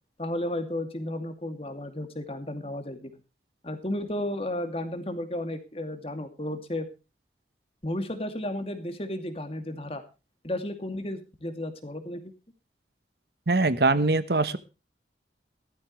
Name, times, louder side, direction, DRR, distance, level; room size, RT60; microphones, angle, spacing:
voice 1, 0.2-3.1 3.6-6.9 7.8-10.0 10.4-12.2, left 1 dB, 30° left, 8 dB, 2.5 m, -33 dB
voice 2, 13.5-14.6, right 3 dB, 60° right, 14 dB, 1.2 m, -22 dB
17.0 x 13.5 x 3.2 m, 0.31 s
head